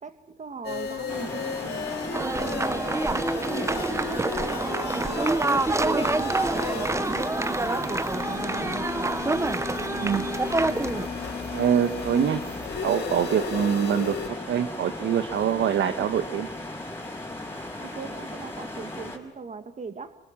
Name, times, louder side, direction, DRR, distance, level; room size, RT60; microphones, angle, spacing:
voice 1, 0.0-5.4 5.8-8.0 17.8-20.2, right 4 dB, 35° right, 9 dB, 2.3 m, -40 dB
sound 1, 0.6-14.3, left 6 dB, 55° left, 3.6 m, -35 dB
sound 2, 1.1-19.2, left 1 dB, 10° left, 5.8 m, -37 dB
sound 3, 2.1-11.1, right 2 dB, 15° right, 0.8 m, -27 dB
voice 2, 9.9-10.3 11.5-12.4 12.8-14.1 14.5-16.5, right 9 dB, 70° right, 9 dB, 1.4 m, -24 dB
29.0 x 20.5 x 7.5 m, 0.90 s
cardioid pair, 90°, 20 cm